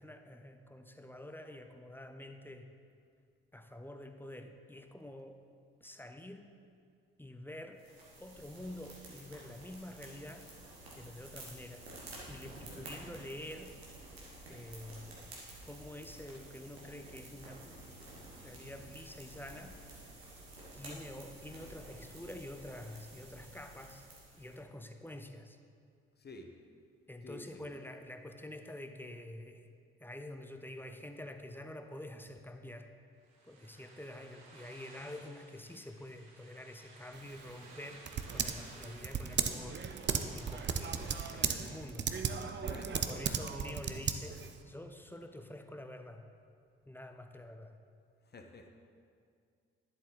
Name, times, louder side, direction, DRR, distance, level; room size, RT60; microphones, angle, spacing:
voice 1, 0.0-2.7 3.5-5.4 5.8-6.5 7.2-7.8 8.2-10.5 10.9-11.9 12.3-13.8 14.5-15.2 15.6-17.8 18.3-19.7 20.7-24.0 24.3-25.6 27.1-29.7 30.0-32.9 33.5-38.1 38.3-39.8 40.3-42.1 43.1-46.3 46.9-47.8, left 1 dB, 5° left, 7 dB, 0.8 m, -47 dB
sound 1, 7.8-24.6, right 2 dB, 90° right, 1.5 m, -51 dB
voice 2, 27.2-27.6 42.6-43.4 48.3-48.7, left 2 dB, 35° left, 4 dB, 1.1 m, -50 dB
sound 2, 33.2-41.3, right 2 dB, 65° right, 1.7 m, -57 dB
Typing, 37.1-44.6, right 7 dB, 35° right, 0.7 m, -36 dB
11.0 x 7.4 x 4.0 m, 2.2 s
figure-of-eight pair, 40°, 30 cm